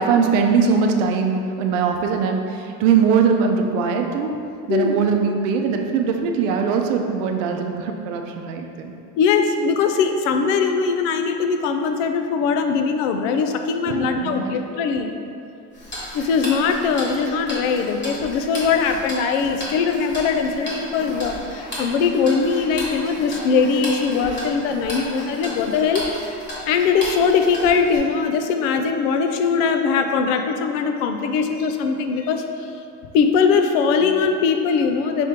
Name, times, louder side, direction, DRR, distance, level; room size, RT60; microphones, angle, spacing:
voice 1, 0.0-4.3 4.7-8.9 13.9-14.5, right 6 dB, 85° right, 3 dB, 0.6 m, -21 dB
voice 2, 9.2-15.1 16.1-26.1 26.6-32.4 33.1-35.3, left 5 dB, 80° left, 6 dB, 0.5 m, -21 dB
Tick-tock, 15.7-28.0, left 1 dB, 30° left, 1.3 m, -34 dB
5.2 x 3.5 x 2.8 m, 2.5 s
supercardioid pair, 130°, 37 cm